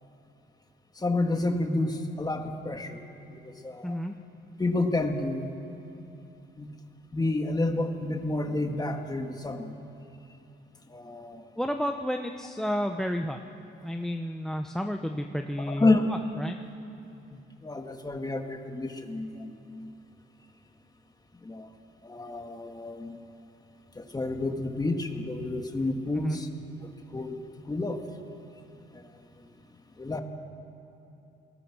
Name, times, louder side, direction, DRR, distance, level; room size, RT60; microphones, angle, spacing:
voice 1, 1.0-3.0 3.3-4.0 4.6-5.5 6.6-6.7 7.1-9.7 10.9-11.5 15.6-16.0 17.3-19.9 21.4-21.7 22.0-23.2 24.0-26.5 27.1-27.4 27.7-28.0 28.9-29.0 30.0-30.2, left 2 dB, 20° left, 4 dB, 2.2 m, -30 dB
voice 2, 3.8-4.1 11.6-13.4 13.8-16.6 26.2-26.4, equal, ahead, 6 dB, 1.0 m, -31 dB
28.5 x 19.5 x 6.3 m, 2.8 s
cardioid pair, 90°, 20 cm